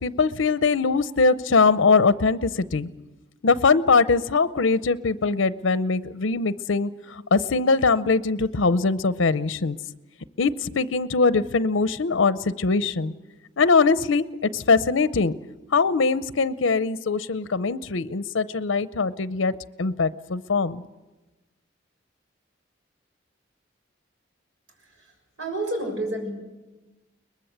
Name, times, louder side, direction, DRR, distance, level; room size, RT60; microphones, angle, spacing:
voice 1, 0.0-2.9 3.4-9.8 10.4-13.1 13.6-15.3 15.7-20.8, left 4 dB, 80° left, 15 dB, 0.7 m, -22 dB
voice 2, 24.8-25.1 25.4-26.3, right 1 dB, 85° right, 3 dB, 6.7 m, -30 dB
22.5 x 20.5 x 8.0 m, 1.1 s
head